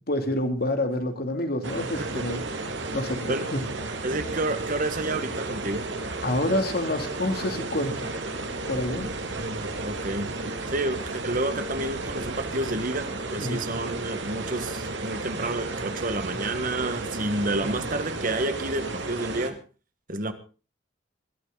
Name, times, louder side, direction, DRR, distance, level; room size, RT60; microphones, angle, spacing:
voice 1, 0.1-2.4 2.9-3.6 6.2-8.1 8.7-9.1 13.4-13.7 17.5-17.8, left 1 dB, 55° left, 5 dB, 2.8 m, -28 dB
sound 1, 1.6-19.5, right 2 dB, 75° right, 2.4 m, -33 dB
voice 2, 4.0-5.9 9.3-10.3 10.7-19.6 20.1-20.3, right 2 dB, 45° right, 10 dB, 1.6 m, -30 dB
21.0 x 13.0 x 4.0 m, 0.35 s
head